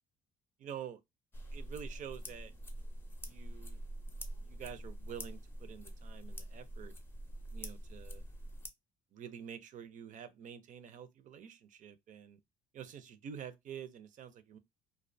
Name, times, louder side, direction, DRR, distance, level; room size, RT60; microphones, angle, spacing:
voice 1, 0.6-1.0 1.5-2.5 3.3-3.8 4.4-6.9 7.5-8.2 9.1-12.4 12.7-14.6, right 8 dB, 50° right, 0.4 m, -48 dB
sound 1, 1.3-8.7, equal, 15° left, 0.4 m, -45 dB
2.4 x 2.1 x 2.5 m
cardioid pair, 110°, 17 cm